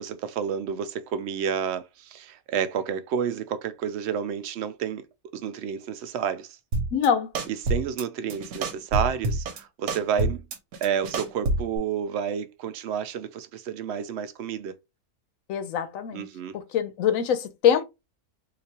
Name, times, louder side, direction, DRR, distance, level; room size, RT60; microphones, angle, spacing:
voice 1, 0.0-5.1 5.3-6.6 7.6-10.4 10.8-14.7 16.1-16.6, right 8 dB, 70° right, 0.6 m, -30 dB
sound 1, 6.7-7.1 7.4-8.0 8.3-9.6 9.9-11.8, right 2 dB, 85° right, 1.3 m, -27 dB
voice 2, 6.9-7.3 15.5-16.3 16.5-17.8, left 8 dB, 70° left, 0.9 m, -24 dB
3.9 x 2.5 x 2.8 m
omnidirectional pair, 1.6 m